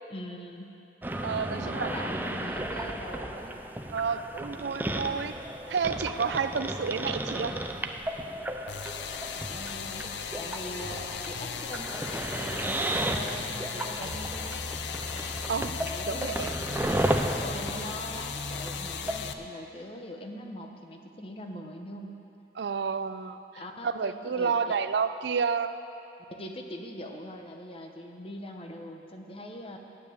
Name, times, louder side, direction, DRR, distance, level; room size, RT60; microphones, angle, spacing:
voice 1, 0.1-0.8 1.5-3.6 9.3-14.6 15.9-16.3 17.4-22.2 23.6-24.8 26.3-29.8, left 1 dB, 30° left, 3 dB, 0.9 m, -41 dB
sound 1, 1.0-19.2, right 1 dB, 10° right, 0.5 m, -34 dB
voice 2, 1.2-1.9 3.9-5.4 5.7-7.5 15.2-15.8 16.1-16.5 22.6-23.4 23.8-25.7, right 5 dB, 70° right, 11 dB, 0.4 m, -30 dB
sound 2, 8.7-19.3, left 6 dB, 75° left, 0.6 m, -36 dB
9.8 x 9.2 x 8.5 m, 2.8 s
head